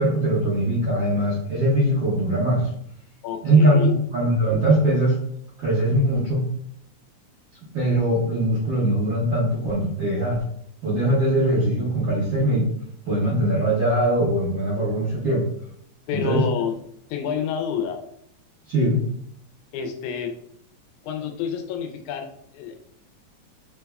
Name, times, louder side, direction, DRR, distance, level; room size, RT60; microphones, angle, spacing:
voice 1, 0.0-2.7 3.4-5.2 5.6-6.4 7.7-10.4 10.8-12.7 13.0-15.4 16.1-16.4 18.7-19.0, right 1 dB, 65° right, -8 dB, 1.2 m, -21 dB
voice 2, 3.2-4.0 16.1-16.8 17.1-18.0 19.7-20.4 21.0-22.8, left 7 dB, 90° left, 5 dB, 2.0 m, -29 dB
4.5 x 3.4 x 2.2 m, 0.67 s
omnidirectional pair, 3.4 m